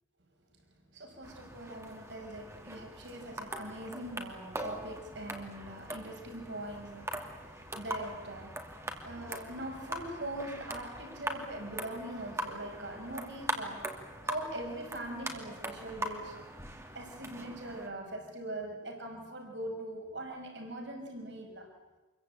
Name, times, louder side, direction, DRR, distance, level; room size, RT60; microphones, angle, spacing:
voice 1, 0.9-8.7 9.0-16.5 16.9-21.7, right 1 dB, 65° right, 2 dB, 6.1 m, -42 dB
sound 1, 1.2-17.9, right 1 dB, 15° right, 2.6 m, -42 dB
27.5 x 23.0 x 9.0 m, 1.2 s
head